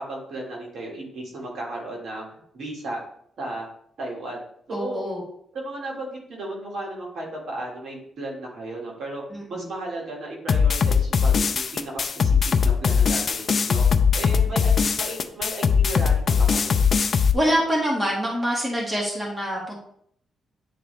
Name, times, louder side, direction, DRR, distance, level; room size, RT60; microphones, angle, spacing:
voice 1, 0.0-2.3 2.5-3.0 3.4-3.7 4.0-4.4 4.7-5.0 5.5-9.2 9.5-13.8 14.1-16.8, right 1 dB, 55° right, -2 dB, 2.0 m, -34 dB
voice 2, 4.7-5.2 9.3-9.7 14.3-14.7 17.3-19.8, equal, 10° right, -4 dB, 1.7 m, -25 dB
sound 1, 10.5-17.3, left 6 dB, 40° left, 0.4 m, -20 dB
9.7 x 3.9 x 3.3 m, 0.68 s
wide cardioid pair, 160°, 0 cm